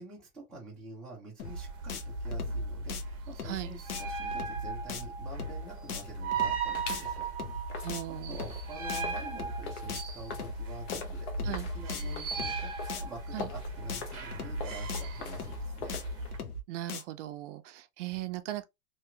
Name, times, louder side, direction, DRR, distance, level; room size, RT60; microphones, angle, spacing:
voice 1, 0.0-7.3 8.3-16.0, right 2 dB, ahead, 0.4 m, -47 dB
sound 1, 1.4-1.6 1.9-2.0 2.3-2.6 2.9-3.0 3.4-3.6 3.9-4.0 4.3-4.6 4.9-5.0 5.4-5.6 5.9-6.0 6.3-6.6 6.9-7.0 7.4-7.6 7.9-8.0 8.3-8.6 8.9-9.0 9.4-9.6 9.9-10.0 10.3-10.6 10.9-11.0 11.4-11.6 11.9-12.0 12.3-12.6 12.9-13.0 13.4-13.6 13.9-14.0 14.3-14.6 14.9-15.0 15.4-15.6 15.9-16.0 16.3-16.6 16.9-17.0, left 4 dB, 90° left, 0.9 m, -39 dB
sound 2, 1.4-16.4, right 3 dB, 30° right, 0.8 m, -37 dB
sound 3, 5.3-6.4 6.7-16.3, left 5 dB, 45° left, 0.8 m, -45 dB
voice 2, 7.8-8.4 11.4-11.7 13.3-13.5 16.7-18.6, right 15 dB, 55° right, 0.5 m, -38 dB
2.9 x 2.9 x 2.2 m
supercardioid pair, 155°, 44 cm